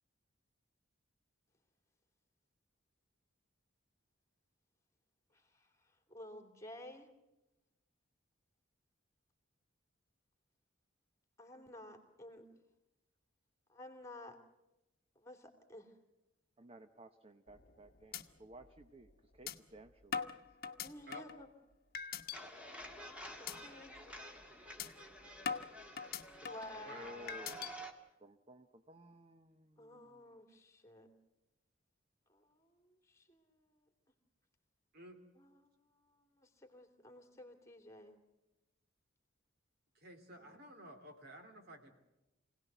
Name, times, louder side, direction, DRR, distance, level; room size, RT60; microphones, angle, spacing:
voice 1, 5.3-7.1 11.4-12.5 13.7-14.4 15.1-15.9 20.8-21.5 23.4-24.1 26.4-27.5 29.8-31.1 32.3-33.9 35.3-38.2, left 1 dB, 15° left, 5 dB, 2.8 m, -53 dB
voice 2, 16.6-20.4 26.7-27.7 28.2-30.3 40.4-40.6, equal, 30° right, 9 dB, 0.8 m, -56 dB
sound 1, 17.5-17.8 18.1-18.2 18.6-18.7 19.5-19.6 20.1-21.4 21.9-22.4 22.8-23.0 23.5-23.6 24.0-24.2 24.8-24.9 25.5-26.7 27.3-27.7, left 6 dB, 50° left, 1.1 m, -41 dB
sound 2, 22.3-27.9, equal, 5° right, 2.0 m, -51 dB
voice 3, 26.8-27.6 34.9-35.2 39.9-41.9, right 1 dB, 55° right, 5 dB, 3.0 m, -53 dB
25.5 x 17.5 x 8.1 m, 0.96 s
head